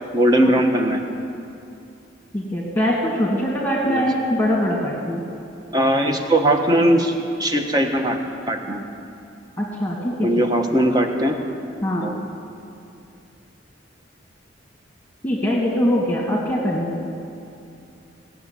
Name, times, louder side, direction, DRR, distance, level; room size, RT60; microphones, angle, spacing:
voice 1, 0.1-1.0 3.9-4.0 5.7-8.2 8.5-8.8 10.2-11.4 12.0-12.2, right 1 dB, 20° right, 4 dB, 1.2 m, -19 dB
voice 2, 2.3-5.2 9.6-10.3 11.8-12.1 15.2-17.1, equal, 10° left, -4 dB, 2.1 m, -22 dB
18.0 x 7.2 x 9.7 m, 2.6 s
head